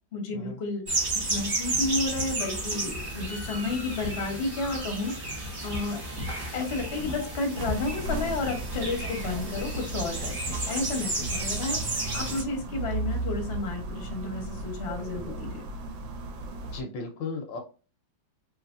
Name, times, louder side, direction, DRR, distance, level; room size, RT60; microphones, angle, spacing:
voice 1, 0.1-0.8 1.2-6.0 6.5-15.6, left 3 dB, 45° left, 2 dB, 0.9 m, -32 dB
sound 1, 0.9-12.4, right 2 dB, 35° right, 1.3 m, -32 dB
sound 2, 7.6-16.8, right 2 dB, 75° right, 1.3 m, -35 dB
voice 2, 16.7-17.6, left 3 dB, 75° left, 4 dB, 1.3 m, -35 dB
3.1 x 3.1 x 2.4 m, 0.36 s
omnidirectional pair, 2.1 m